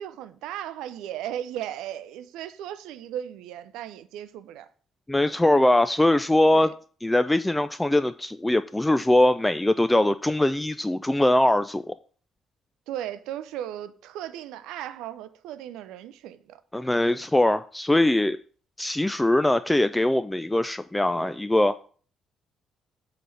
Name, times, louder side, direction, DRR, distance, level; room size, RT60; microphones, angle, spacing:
voice 1, 0.0-4.7 6.5-6.7 12.9-16.6, right 11 dB, 70° right, 0.5 m, -36 dB
voice 2, 5.1-6.7 7.0-11.9 16.7-18.4 18.8-21.8, left 1 dB, 10° left, 0.4 m, -22 dB
7.7 x 4.2 x 6.3 m
figure-of-eight pair, 45°, 0 cm